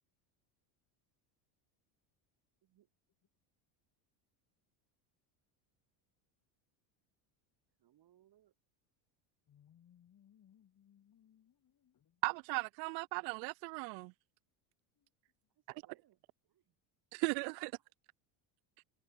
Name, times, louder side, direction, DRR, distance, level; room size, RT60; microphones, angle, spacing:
voice 1, 7.8-8.5 15.5-16.7 17.2-17.5 17.8-17.9, right 12 dB, 50° right, 6.6 m, -70 dB
voice 2, 9.5-12.2 15.0-15.1, left 10 dB, 40° left, 5.2 m, -66 dB
voice 3, 12.2-14.1 17.1-17.7, right 40 dB or more, 85° right, 0.7 m, -37 dB
cardioid pair, 125°, 49 cm